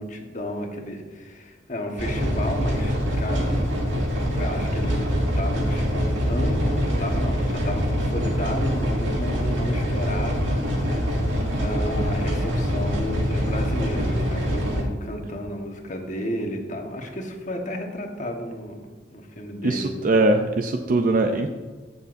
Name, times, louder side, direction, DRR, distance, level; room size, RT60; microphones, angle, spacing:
voice 1, 0.0-3.6 4.3-5.1 5.4-18.8 19.1-20.0, left 1 dB, 40° left, 2 dB, 1.3 m, -32 dB
sound 1, 2.0-14.8, equal, 90° right, 1.9 m, -24 dB
voice 2, 19.6-21.5, right 2 dB, 45° right, 5 dB, 0.5 m, -21 dB
15.0 x 6.9 x 2.6 m, 1.4 s
head